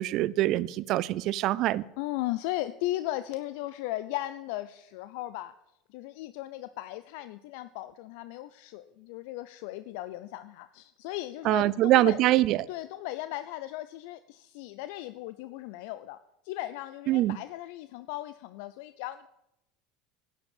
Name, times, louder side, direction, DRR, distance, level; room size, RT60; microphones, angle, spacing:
voice 1, 0.0-1.8 11.4-12.6 17.1-17.4, right 15 dB, 55° right, 0.5 m, -24 dB
voice 2, 2.0-5.5 5.9-12.2 12.7-16.2 16.4-19.3, left 16 dB, 70° left, 0.5 m, -37 dB
11.0 x 7.3 x 8.5 m
hypercardioid pair, 85°, 0 cm